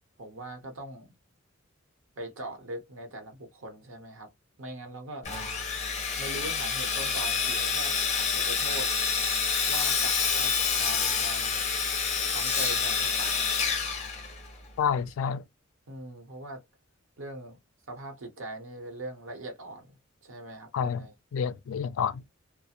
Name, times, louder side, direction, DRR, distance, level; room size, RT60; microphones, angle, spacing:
voice 1, 0.2-1.1 2.2-4.3 4.6-5.3 6.2-8.9 9.7-11.6 12.3-13.6 15.9-16.6 17.2-17.6 17.9-21.1, right 1 dB, 80° right, 0.9 m, -41 dB
Sawing, 5.2-14.7, left 5 dB, 35° left, 0.6 m, -28 dB
voice 2, 14.8-15.4 20.7-21.0 21.3-22.3, left 7 dB, 80° left, 0.3 m, -29 dB
2.4 x 2.0 x 2.8 m
head